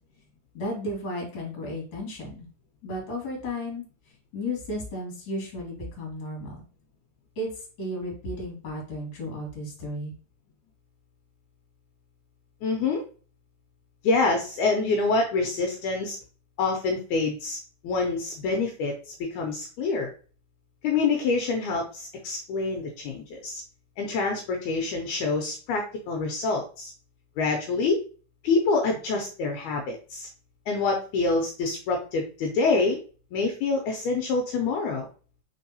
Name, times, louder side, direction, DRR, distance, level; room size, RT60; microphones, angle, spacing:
voice 1, 0.5-2.5 2.8-3.8 4.3-6.6 7.4-7.5 7.8-10.1, left 1 dB, 45° left, -2 dB, 2.1 m, -33 dB
voice 2, 12.6-13.0 14.0-16.2 16.6-17.6 17.8-20.1 20.8-23.6 24.0-26.9 27.4-28.0 28.4-30.3 30.7-33.0 33.3-35.1, left 3 dB, 80° left, 2 dB, 2.0 m, -26 dB
4.6 x 3.6 x 2.7 m, 0.38 s
omnidirectional pair, 3.7 m